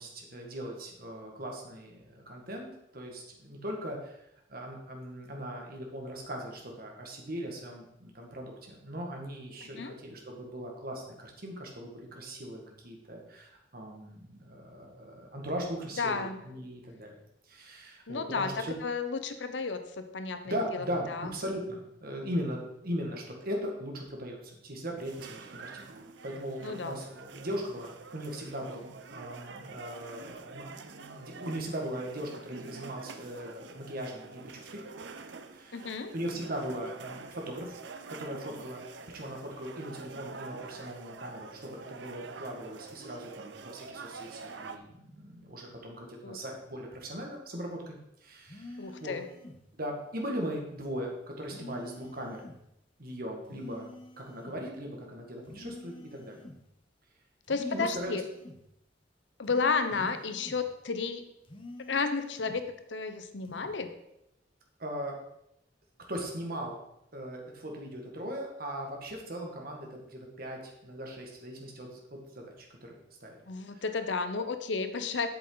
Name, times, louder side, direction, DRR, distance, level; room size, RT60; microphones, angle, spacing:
voice 1, 0.0-2.7 2.9-4.2 4.5-17.1 17.5-18.8 20.5-25.9 26.2-34.8 35.5-37.8 38.1-38.8 39.1-49.2 49.7-52.4 53.0-53.9 54.2-56.4 57.6-58.2 60.0-60.1 64.8-65.2 66.1-66.8 67.1-73.4 73.7-73.8, equal, 55° right, 1 dB, 1.8 m, -39 dB
voice 2, 9.6-9.9 16.0-16.4 18.1-21.3 26.6-27.0 35.7-36.1 46.2-46.4 48.8-49.3 57.5-58.2 59.4-61.2 61.9-63.9 73.5-75.3, left 4 dB, 85° left, 9 dB, 0.8 m, -32 dB
sound 1, 25.0-44.8, right 4 dB, 80° right, 0.6 m, -46 dB
sound 2, 48.5-49.6 51.5-52.6 53.5-54.6 55.5-56.6 57.4-58.6 59.5-60.6 61.4-62.6 63.4-63.8, left 2 dB, 30° left, 1.0 m, -48 dB
8.0 x 7.7 x 4.0 m, 0.81 s
head